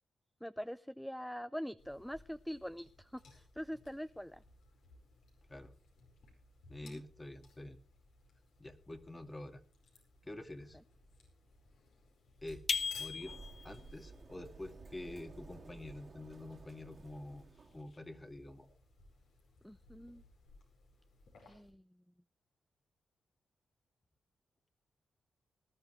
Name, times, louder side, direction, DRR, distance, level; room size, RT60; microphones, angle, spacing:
voice 1, 0.4-4.4 6.8-7.0 19.6-20.2 21.4-21.9, equal, 5° left, 13 dB, 0.6 m, -44 dB
sound 1, 1.8-21.7, left 2 dB, 85° left, 4.8 m, -62 dB
voice 2, 6.7-7.8 8.6-9.6 10.2-10.8 12.4-12.7 13.0-13.4 13.6-17.4 17.7-18.7, left 1 dB, 25° left, 5 dB, 2.0 m, -47 dB
sound 2, 12.7-13.8, left 6 dB, 55° left, 0.9 m, -36 dB
Sliding door, 12.8-17.8, right 3 dB, 50° right, 2.6 m, -54 dB
19.5 x 12.0 x 3.3 m, 0.36 s
cardioid pair, 60°, 0 cm